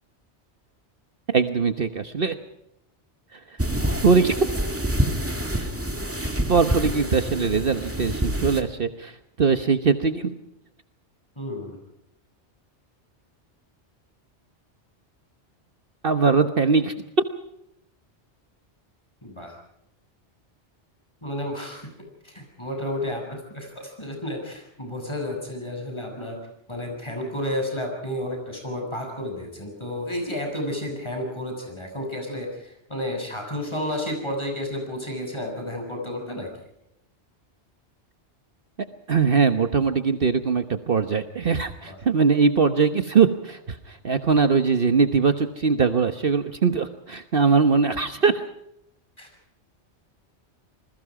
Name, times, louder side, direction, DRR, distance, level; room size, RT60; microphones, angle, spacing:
voice 1, 1.3-2.3 3.3-3.4 4.0-4.3 5.6-5.7 6.2-10.3 16.0-16.9 39.1-48.4, right 5 dB, 55° right, 8 dB, 1.3 m, -21 dB
sound 1, 3.6-8.6, equal, 10° right, 1.9 m, -27 dB
voice 2, 11.4-11.8 19.2-19.5 21.2-21.9 22.2-26.4 26.7-36.5 41.9-42.0 49.2-49.3, left 1 dB, 25° left, 2 dB, 7.1 m, -31 dB
28.0 x 21.0 x 4.9 m, 0.79 s
omnidirectional pair, 1.2 m